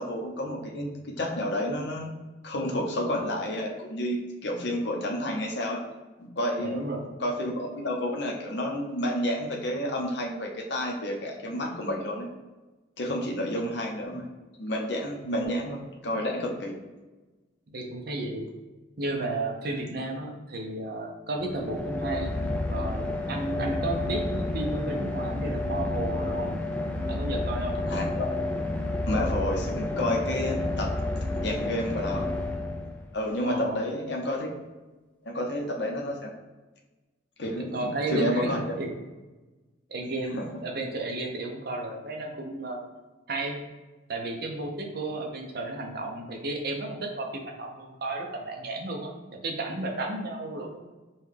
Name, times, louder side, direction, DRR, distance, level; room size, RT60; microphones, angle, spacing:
voice 1, 0.0-2.1 2.4-5.8 6.2-12.3 13.0-14.3 14.6-16.8 27.9-28.3 29.0-30.9 31.4-32.3 33.1-34.5 35.2-36.3 37.4-38.6 40.3-40.5, left 1 dB, 60° left, 0 dB, 0.7 m, -30 dB
voice 2, 6.6-7.1 13.5-13.6 15.2-15.3 17.7-18.5 19.0-22.3 22.7-26.5 27.1-27.8 33.4-33.8 37.6-38.9 39.9-42.8 43.3-43.6 44.1-50.8, right 2 dB, 50° right, 2 dB, 0.6 m, -33 dB
sound 1, 21.4-33.3, left 2 dB, 10° left, 0.3 m, -30 dB
5.5 x 2.3 x 3.2 m, 1.2 s
head